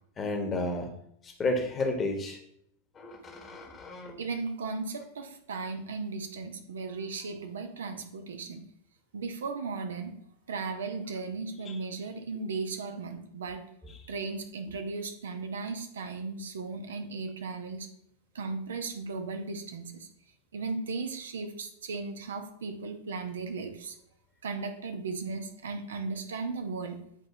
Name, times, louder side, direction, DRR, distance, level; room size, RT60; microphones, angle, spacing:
voice 1, 0.2-0.9 1.2-2.4 3.0-4.2 11.7-11.8, left 2 dB, 20° left, 3 dB, 1.2 m, -32 dB
voice 2, 4.2-8.6 9.1-10.1 10.5-13.6 14.1-17.9 18.3-20.1 20.5-23.9 24.4-27.0, right 4 dB, 65° right, 6 dB, 0.7 m, -36 dB
8.2 x 4.3 x 2.7 m, 0.72 s
figure-of-eight pair, 90°, 0 cm